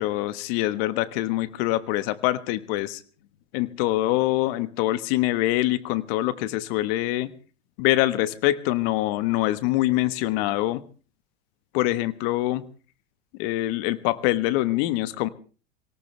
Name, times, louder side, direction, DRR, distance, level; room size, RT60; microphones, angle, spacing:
voice 1, 0.0-3.0 3.5-7.3 7.8-10.8 11.7-12.7 13.4-15.3, left 16 dB, 60° left, 14 dB, 1.4 m, -24 dB
24.0 x 18.0 x 3.3 m, 0.36 s
hypercardioid pair, 105°, 34 cm